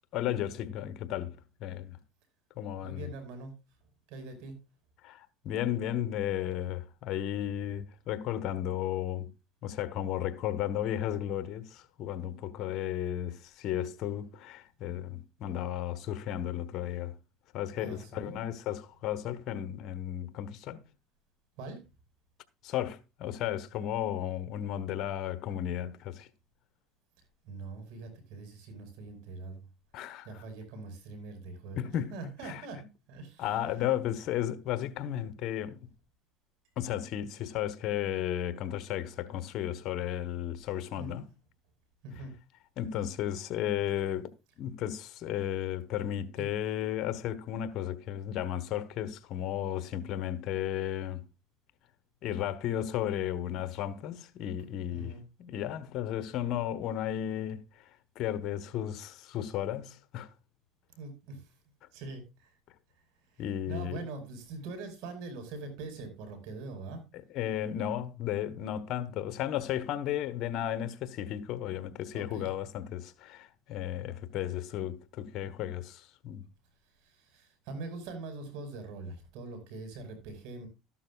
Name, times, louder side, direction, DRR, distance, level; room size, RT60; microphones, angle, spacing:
voice 1, 0.1-2.0 2.6-3.1 5.0-9.3 9.6-17.1 17.5-20.8 22.6-26.3 29.9-30.3 31.7-32.1 32.4-32.6 33.4-35.9 36.8-41.3 42.8-44.3 44.6-51.2 52.2-55.1 55.4-57.6 58.1-60.3 63.4-64.0 67.3-76.4, left 11 dB, 60° left, 1.2 m, -34 dB
voice 2, 2.8-3.5 4.1-4.6 17.7-18.4 21.6-21.8 27.4-29.6 30.2-33.5 41.0-41.1 42.0-42.3 46.4-46.5 54.9-55.2 60.9-61.5 61.9-62.5 63.3-67.0 69.0-69.3 72.1-72.5 77.0-80.7, right 3 dB, 75° right, 5.2 m, -43 dB
14.0 x 11.5 x 2.4 m
supercardioid pair, 95°, 0 cm